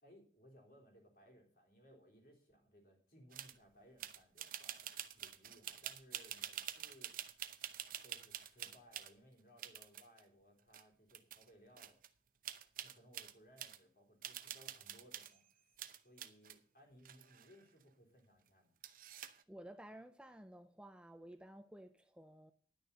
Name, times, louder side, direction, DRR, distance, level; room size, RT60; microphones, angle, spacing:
voice 1, 0.0-7.5 8.0-12.0 12.8-18.7, equal, 50° left, 3.7 m, -64 dB
sound 1, 3.3-3.6 4.0-9.1 9.6-10.2 10.7-10.8 11.1-11.5 11.8-12.1 12.4-13.8 14.2-15.4 15.8-16.6 17.0-17.8 18.8-19.4, right 11 dB, 50° right, 0.7 m, -47 dB
voice 2, 19.5-22.5, right 1 dB, 5° right, 0.5 m, -54 dB
11.0 x 6.5 x 6.9 m
head